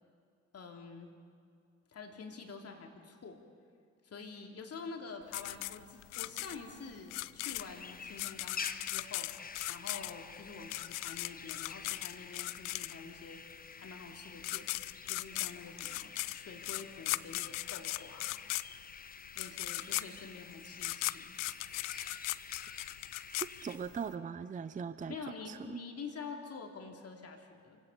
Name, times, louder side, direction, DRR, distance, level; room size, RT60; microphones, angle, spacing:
voice 1, 0.5-1.1 1.9-3.4 4.0-9.3 9.7-13.4 13.8-14.7 15.1-18.3 19.3-21.4 25.1-27.8, left 5 dB, 40° left, 3 dB, 2.9 m, -47 dB
sound 1, 5.3-13.3 14.1-14.2 14.4-24.1, left 21 dB, 55° left, 0.5 m, -38 dB
sound 2, 7.5-23.8, left 5 dB, 25° left, 1.1 m, -49 dB
sound 3, 19.4-20.9 21.3-22.6 23.2-24.3, right 4 dB, 70° right, 3.5 m, -61 dB
voice 2, 23.4-25.2 25.5-25.8, right 6 dB, 20° right, 13 dB, 0.7 m, -40 dB
28.5 x 17.0 x 5.7 m, 2.3 s
figure-of-eight pair, 50°, 38 cm